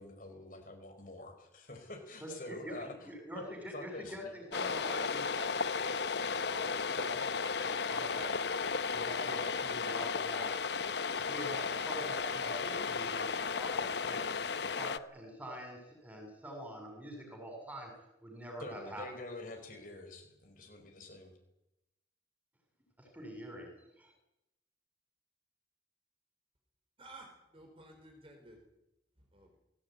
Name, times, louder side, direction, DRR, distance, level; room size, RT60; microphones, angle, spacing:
voice 1, 0.0-3.1 3.7-4.4 18.6-21.3, left 2 dB, 45° left, 4 dB, 4.9 m, -47 dB
voice 2, 2.2-8.3 8.9-10.5 11.1-14.4 14.7-17.9 18.2-19.1 23.0-23.7 24.0-24.1, equal, 10° right, 2 dB, 7.4 m, -46 dB
sound 1, 4.5-15.0, left 5 dB, 65° left, 0.8 m, -34 dB
voice 3, 27.0-28.6 29.3-29.6, right 2 dB, 30° right, 3 dB, 4.4 m, -54 dB
20.5 x 18.0 x 9.5 m, 0.90 s
head